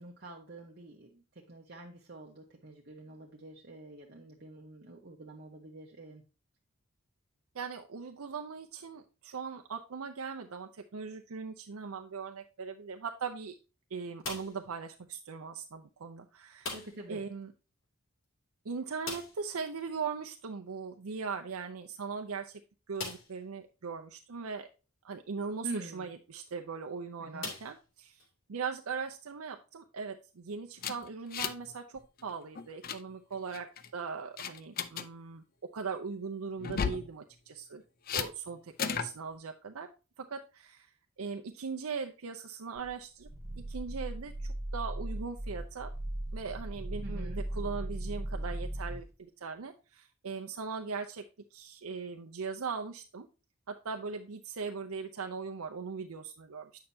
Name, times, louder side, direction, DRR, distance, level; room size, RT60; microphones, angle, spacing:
voice 1, 0.0-6.2 16.7-17.2 25.6-26.1 27.2-27.5 47.0-47.5, right 2 dB, 45° right, 0.9 m, -46 dB
voice 2, 7.5-13.5 13.9-16.7 17.1-17.5 18.6-22.6 22.9-24.7 25.0-28.2 28.5-33.7 33.9-35.4 35.7-37.8 38.1-39.9 40.2-40.9 41.2-43.3 43.6-45.9 46.3-51.2 51.5-53.3 53.7-56.7, right 5 dB, 80° right, 0.6 m, -39 dB
sound 1, 14.2-14.8 16.6-17.2 17.4-17.5 17.8-17.9 19.0-19.6 21.3-21.4 22.0-22.1 22.9-23.5 24.2-24.3 26.3-26.5 27.4-28.3, left 3 dB, 65° left, 2.7 m, -41 dB
sound 2, 30.8-31.7 32.0-32.2 32.6-33.0 33.5-33.9 34.4-35.1 36.6-37.1 38.1-38.3 38.8-39.1, left 7 dB, 40° left, 0.5 m, -34 dB
Growling, 42.8-49.1, right 1 dB, 15° right, 1.0 m, -38 dB
8.7 x 5.7 x 2.7 m
head